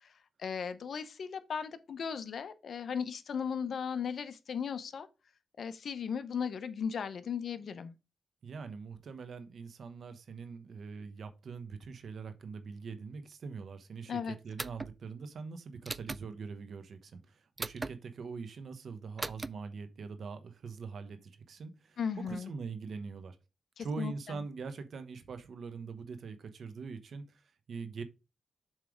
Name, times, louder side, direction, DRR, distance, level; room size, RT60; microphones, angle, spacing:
voice 1, 0.4-5.1 5.6-7.9 14.1-14.4 22.0-22.5 23.8-24.4, left 7 dB, 70° left, 0.7 m, -36 dB
voice 2, 8.4-23.4 23.8-28.0, right 5 dB, 70° right, 1.0 m, -43 dB
sound 1, 14.6-14.9 15.8-16.2 17.6-17.9 19.2-19.5, right 3 dB, 30° right, 0.3 m, -38 dB
7.4 x 3.3 x 4.9 m
cardioid pair, 75°, 0 cm